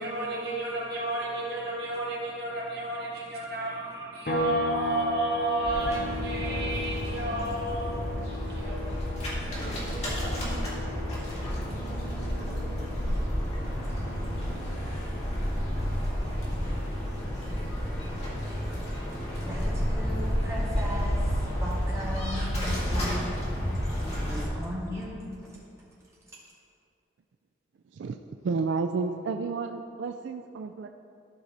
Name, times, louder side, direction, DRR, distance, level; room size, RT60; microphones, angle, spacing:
voice 1, 0.0-8.9 9.2-10.6, right 2 dB, 60° right, -5 dB, 2.1 m, -32 dB
sound 1, 4.3-17.8 18.1-20.4, left 1 dB, 50° left, 0.7 m, -39 dB
sound 2, 5.6-24.5, equal, 35° left, 2.0 m, -31 dB
voice 2, 19.4-23.5 24.0-25.6, equal, 15° right, -8 dB, 2.1 m, -37 dB
voice 3, 28.4-30.9, right 4 dB, 85° right, 6 dB, 0.3 m, -31 dB
12.5 x 5.2 x 4.1 m, 2.5 s
head